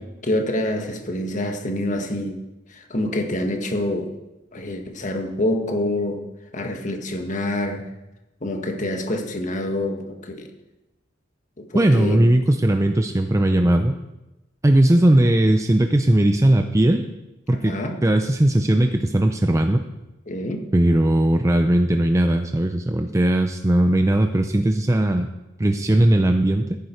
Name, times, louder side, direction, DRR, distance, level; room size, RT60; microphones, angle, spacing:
voice 1, 0.2-2.4 2.7-4.1 4.5-6.2 6.5-7.9 8.4-10.5 11.6-12.3 17.5-18.0 20.3-20.7, left 1 dB, 40° left, 4 dB, 1.6 m, -26 dB
voice 2, 11.7-14.0 14.6-17.0 17.5-17.8 18.0-19.8 20.7-25.3 25.6-26.8, right 1 dB, 15° right, 5 dB, 0.5 m, -18 dB
14.5 x 10.5 x 4.5 m, 0.99 s
head